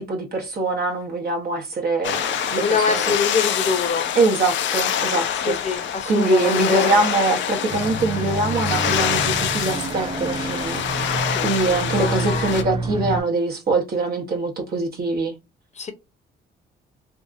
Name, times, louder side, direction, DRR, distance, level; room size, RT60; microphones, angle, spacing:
voice 1, 0.0-3.1 4.2-10.8 11.4-15.3, right 2 dB, 50° right, 0.8 m, -23 dB
sound 1, 2.0-12.6, left 9 dB, 70° left, 0.4 m, -25 dB
voice 2, 2.5-4.1 5.4-7.0 11.3-12.5 15.8-15.9, left 5 dB, 35° left, 0.7 m, -25 dB
sound 2, 7.7-13.2, right 3 dB, 25° right, 0.4 m, -28 dB
2.7 x 2.4 x 2.4 m
cardioid pair, 90°, 20 cm